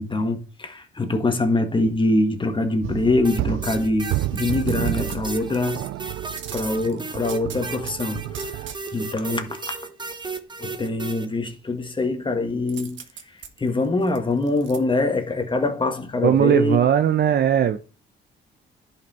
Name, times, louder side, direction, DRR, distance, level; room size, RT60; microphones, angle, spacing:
voice 1, 0.0-5.8 6.5-8.3 8.5-8.6 8.9-9.6 10.6-16.8, left 2 dB, 25° left, 1.7 m, -24 dB
sound 1, 2.8-8.7, right 16 dB, 85° right, 0.4 m, -30 dB
sound 2, 3.2-11.3, right 3 dB, 20° right, 1.2 m, -34 dB
sound 3, 4.3-5.9 6.4-8.0 8.3-9.2 12.7-14.8 15.2-15.3, right 8 dB, 70° right, 1.4 m, -40 dB
voice 2, 16.2-17.8, right 9 dB, 55° right, 0.7 m, -18 dB
10.5 x 5.7 x 4.3 m
cardioid pair, 90°, 20 cm